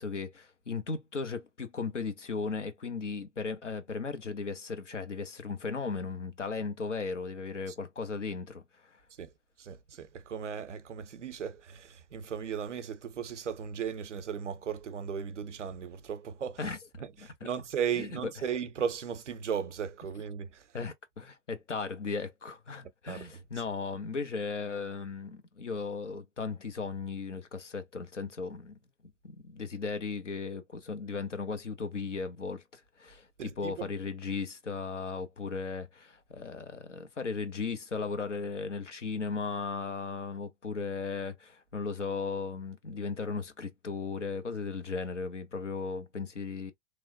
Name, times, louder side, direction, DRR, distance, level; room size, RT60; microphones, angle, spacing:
voice 1, 0.0-9.0 16.6-16.8 17.2-17.5 18.0-18.1 20.7-28.8 29.2-46.7, left 4 dB, 90° left, 0.6 m, -36 dB
voice 2, 9.6-16.7 17.0-20.7 23.1-23.2 33.4-33.9, right 7 dB, 85° right, 0.5 m, -36 dB
3.0 x 2.0 x 2.4 m
figure-of-eight pair, 90°, 35 cm